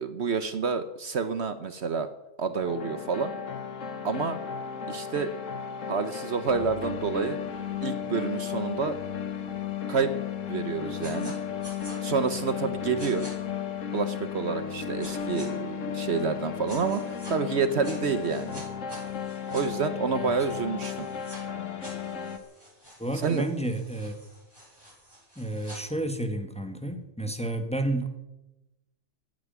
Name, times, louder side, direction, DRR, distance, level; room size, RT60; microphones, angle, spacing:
voice 1, 0.0-2.1 2.4-3.3 4.0-4.4 4.9-5.3 5.9-7.4 7.8-9.0 9.9-10.1 10.5-11.4 12.0-13.3 13.9-18.6 19.5-21.1 23.2-23.4, right 5 dB, 60° right, 11 dB, 1.1 m, -28 dB
sound 1, 2.7-22.4, left 8 dB, 75° left, 1.5 m, -34 dB
sound 2, 11.0-11.3 11.6-12.0 13.0-13.3 15.0-15.5 16.7-17.3 17.8-19.6 20.8-21.4 21.8-25.8, equal, 20° right, 6.0 m, -47 dB
voice 2, 23.0-24.2 25.3-28.1, right 1 dB, 5° left, 6 dB, 1.6 m, -31 dB
15.5 x 9.6 x 9.2 m, 0.96 s
omnidirectional pair, 1.3 m